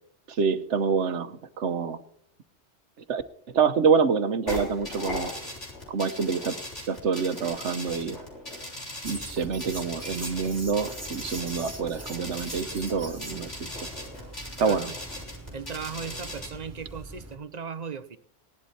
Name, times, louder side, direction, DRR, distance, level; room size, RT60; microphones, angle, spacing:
voice 1, 0.3-2.0 3.1-3.2 3.5-5.3 5.9-6.6 6.8-8.2 9.0-13.5 14.6-14.9, right 5 dB, 75° right, 11 dB, 1.3 m, -26 dB
sound 1, 4.5-16.5, left 1 dB, 75° left, 6.0 m, -38 dB
sound 2, 9.0-17.4, right 1 dB, 15° right, 2.0 m, -42 dB
voice 2, 14.6-15.0 15.4-18.2, right 6 dB, 40° right, 12 dB, 0.8 m, -37 dB
18.0 x 11.5 x 4.3 m, 0.71 s
omnidirectional pair, 1.2 m